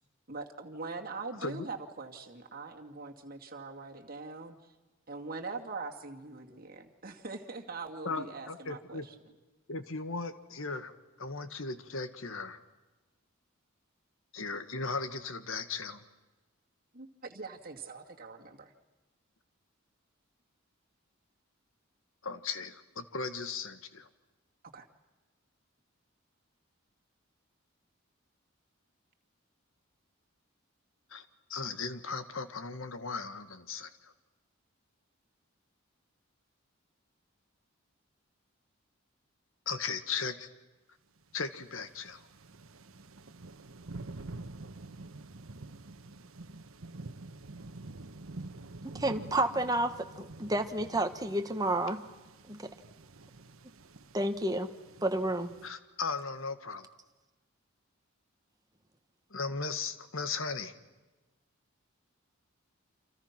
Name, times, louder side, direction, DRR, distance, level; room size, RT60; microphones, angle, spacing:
voice 1, 0.3-4.7 5.1-9.1 16.9-18.7 24.7-24.9, right 3 dB, 45° right, 3 dB, 2.3 m, -42 dB
voice 2, 8.0-9.1 9.7-10.9 11.2-12.6 14.3-16.0 22.2-24.1 31.1-34.1 39.6-40.5 41.3-42.3 55.6-56.9 59.3-60.7, left 4 dB, 75° left, 10 dB, 1.7 m, -37 dB
sound 1, 41.2-41.4 41.7-55.7, right 2 dB, 80° right, 1.2 m, -48 dB
voice 3, 48.8-52.0 52.5-52.7 54.1-54.7 55.0-55.5, right 1 dB, 20° right, 7 dB, 1.4 m, -30 dB
30.0 x 26.5 x 6.0 m, 1.2 s
head